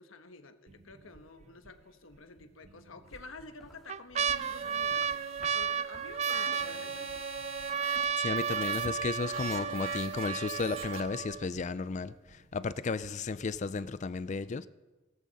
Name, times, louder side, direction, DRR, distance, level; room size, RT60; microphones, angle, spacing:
voice 1, 0.0-7.1, left 3 dB, 85° left, 8 dB, 1.2 m, -50 dB
sound 1, 0.7-1.2 1.7-1.8 2.7-3.2 3.6-11.6 12.3-12.4 12.6-13.1 13.5-13.6, right 7 dB, 35° right, 0.3 m, -33 dB
sound 2, 3.0-9.0, equal, ahead, 2.2 m, -58 dB
sound 3, 4.3-11.0, right 4 dB, 80° right, 1.4 m, -44 dB
voice 2, 8.2-14.7, left 4 dB, 35° left, 16 dB, 0.4 m, -34 dB
17.5 x 14.0 x 4.1 m, 1.2 s
head